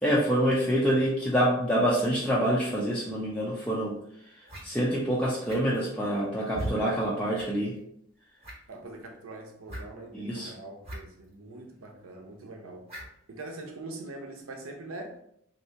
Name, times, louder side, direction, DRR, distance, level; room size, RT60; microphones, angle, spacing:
voice 1, 0.0-4.0 4.6-7.8 10.1-10.5, equal, 5° left, 0.4 m, -26 dB
sound 1, 3.6-3.7 4.4-4.7 5.4-5.8 6.5-6.8 7.3-7.5 7.8-7.9 8.4-8.8 9.7-9.9 10.8-11.0 11.2-11.3 12.9-13.1, right 1 dB, 30° right, 0.8 m, -37 dB
voice 2, 8.7-12.9 13.3-15.2, right 2 dB, 80° right, 0.7 m, -43 dB
3.2 x 2.7 x 2.8 m
head